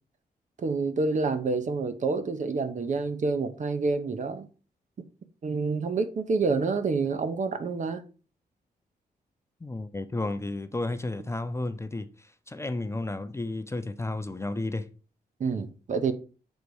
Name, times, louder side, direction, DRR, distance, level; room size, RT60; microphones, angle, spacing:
voice 1, 0.6-4.5 5.4-8.0 15.4-16.1, right 4 dB, 50° right, 0.8 m, -28 dB
voice 2, 9.6-14.9, left 2 dB, 15° left, 0.5 m, -32 dB
6.4 x 4.0 x 4.7 m
wide cardioid pair, 115°, 16 cm